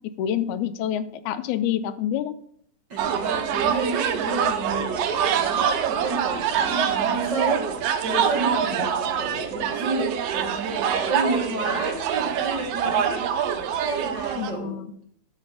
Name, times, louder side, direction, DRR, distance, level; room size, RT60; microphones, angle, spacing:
voice 1, 0.2-2.3 8.7-8.9 14.4-14.9, left 10 dB, 85° left, 12 dB, 2.0 m, -27 dB
voice 2, 2.9-14.8, right 2 dB, 50° right, -1 dB, 1.4 m, -31 dB
sound 1, 3.0-14.5, right 8 dB, 70° right, 1.5 m, -25 dB
11.5 x 4.0 x 5.5 m, 0.66 s
omnidirectional pair, 3.5 m